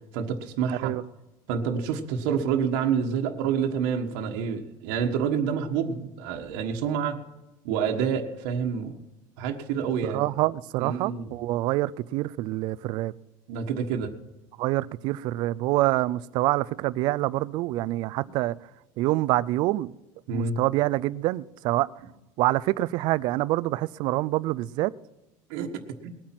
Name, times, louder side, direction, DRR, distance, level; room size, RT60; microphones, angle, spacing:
voice 1, 0.1-0.9 1.5-7.2 7.6-9.0 9.4-10.3 10.8-11.3 13.5-14.1 20.3-20.6 25.5-25.7 26.0-26.1, right 7 dB, 70° right, 1.4 m, -28 dB
voice 2, 0.7-1.0 10.0-13.1 14.6-18.6 19.0-19.9 20.3-21.9 22.4-24.9, right 17 dB, 50° right, 0.4 m, -26 dB
20.0 x 8.8 x 5.9 m
cardioid pair, 160°, 10 cm